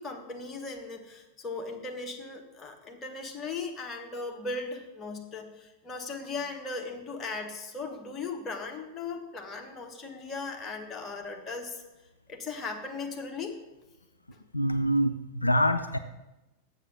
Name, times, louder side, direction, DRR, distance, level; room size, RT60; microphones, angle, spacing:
voice 1, 0.0-11.8 12.3-13.6 14.3-14.4, left 3 dB, 20° left, 2 dB, 1.3 m, -38 dB
voice 2, 14.5-16.0, equal, 85° left, 9 dB, 0.4 m, -25 dB
7.4 x 6.7 x 6.6 m, 0.99 s
figure-of-eight pair, 90°, 0 cm